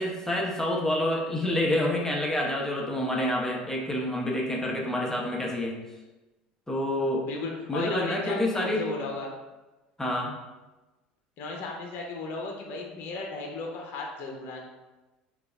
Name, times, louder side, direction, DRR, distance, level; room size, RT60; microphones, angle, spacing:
voice 1, 0.0-5.8 6.7-7.3 7.7-8.9 10.0-10.3, left 1 dB, 10° left, -2 dB, 0.9 m, -28 dB
voice 2, 7.2-9.3 11.4-14.6, left 3 dB, 50° left, 0 dB, 0.7 m, -35 dB
3.8 x 2.4 x 3.4 m, 1.1 s
hypercardioid pair, 70°, 5 cm